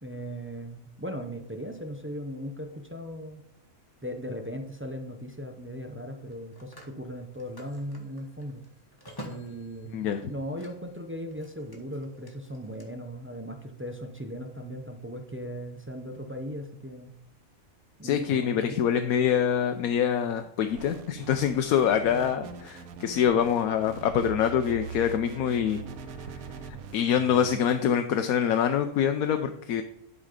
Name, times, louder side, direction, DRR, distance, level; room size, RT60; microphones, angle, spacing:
voice 1, 0.0-3.4 4.0-8.6 9.2-17.1 18.0-18.8, equal, 20° right, 4 dB, 0.3 m, -38 dB
Telephone, 4.0-4.2 6.1-11.0 11.3-12.9, equal, 15° left, 1.3 m, -48 dB
voice 2, 9.9-10.3 18.0-25.8 26.6-29.8, left 8 dB, 85° left, 7 dB, 1.1 m, -25 dB
sound 1, 20.7-27.6, right 6 dB, 85° right, 1.2 m, -41 dB
11.0 x 4.1 x 5.0 m, 0.81 s
omnidirectional pair, 1.5 m